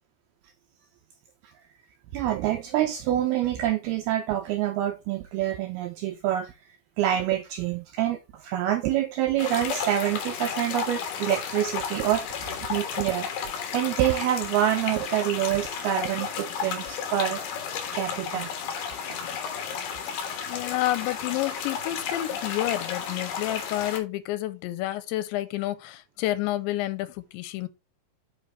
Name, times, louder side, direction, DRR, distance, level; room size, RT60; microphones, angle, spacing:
voice 1, 2.1-6.5 7.0-13.3 13.7-17.4 17.9-18.5 19.1-19.3, right 12 dB, 85° right, 2.2 m, -26 dB
sound 1, 9.4-24.0, left 7 dB, 70° left, 3.0 m, -33 dB
voice 2, 20.5-27.7, left 15 dB, 85° left, 3.0 m, -29 dB
9.4 x 5.0 x 3.3 m
omnidirectional pair, 5.1 m